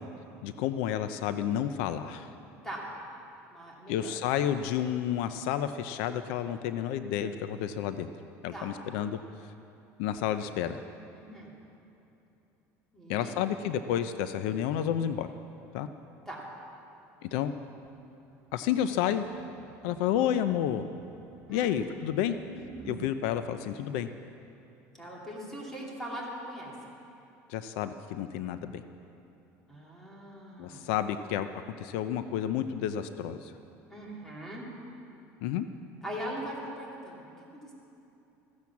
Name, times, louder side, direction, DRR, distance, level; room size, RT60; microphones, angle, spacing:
voice 1, 0.4-2.3 3.9-8.1 8.4-9.2 10.0-10.8 13.1-15.3 15.7-15.9 17.2-17.5 18.5-19.2 19.8-20.9 21.5-22.4 22.8-24.1 27.5-28.8 30.6-33.5 35.4-35.7, left 10 dB, 80° left, 10 dB, 0.6 m, -30 dB
voice 2, 3.5-4.2 8.5-8.7 11.1-11.5 12.9-13.4 16.3-16.5 21.5-21.8 24.9-26.7 29.7-30.9 33.9-34.7 36.0-37.7, equal, 5° left, -4 dB, 2.8 m, -41 dB
sound 1, 17.8-23.1, right 7 dB, 40° right, 1.0 m, -51 dB
14.5 x 10.5 x 7.2 m, 2.9 s
cardioid pair, 155°, 6 cm